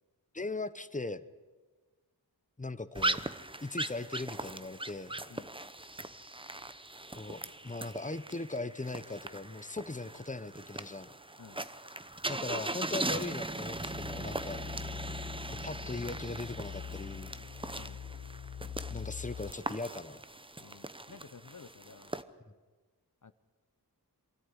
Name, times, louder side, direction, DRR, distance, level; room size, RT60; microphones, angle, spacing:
voice 1, 0.3-1.2 2.6-3.2 3.6-5.2 7.1-11.1 12.3-14.6 15.5-17.4 18.9-20.2, left 2 dB, 20° left, 13 dB, 0.9 m, -39 dB
sound 1, 3.0-22.2, right 2 dB, 15° right, 0.8 m, -39 dB
sound 2, 13.6-19.5, left 8 dB, 80° left, 0.9 m, -44 dB
voice 2, 20.6-22.2 23.2-23.3, left 5 dB, 50° left, 12 dB, 0.9 m, -53 dB
24.0 x 13.5 x 9.9 m, 1.3 s
wide cardioid pair, 65°, 40 cm